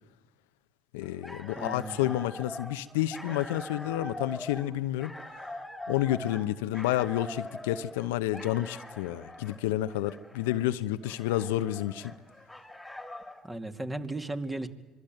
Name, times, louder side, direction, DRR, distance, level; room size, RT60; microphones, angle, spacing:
voice 1, 0.9-5.1 5.9-12.1, left 14 dB, 75° left, 0.9 m, -30 dB
sound 1, 1.0-13.5, left 1 dB, 5° left, 2.9 m, -43 dB
voice 2, 1.6-2.1 13.4-14.7, right 2 dB, 15° right, 2.4 m, -36 dB
26.0 x 23.0 x 9.2 m
hypercardioid pair, 70°, 0 cm